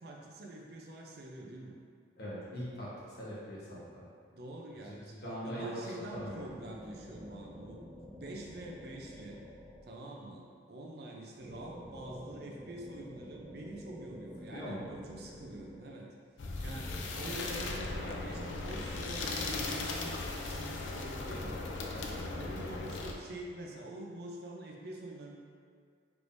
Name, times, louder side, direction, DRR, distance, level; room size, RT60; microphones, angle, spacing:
voice 1, 0.0-1.8 4.3-7.8 8.1-9.4 9.8-16.1 16.6-21.7 22.3-25.4, right 1 dB, 55° right, -1 dB, 0.5 m, -46 dB
voice 2, 2.2-4.0 4.8-6.4 14.5-14.8, equal, 55° left, -7 dB, 1.1 m, -41 dB
sound 1, 6.1-10.3 11.4-16.0 16.7-20.7 21.3-23.0, equal, 5° right, 0.3 m, -49 dB
sound 2, 16.4-23.1, left 3 dB, 85° left, 0.4 m, -38 dB
4.6 x 3.4 x 2.6 m, 2.2 s
head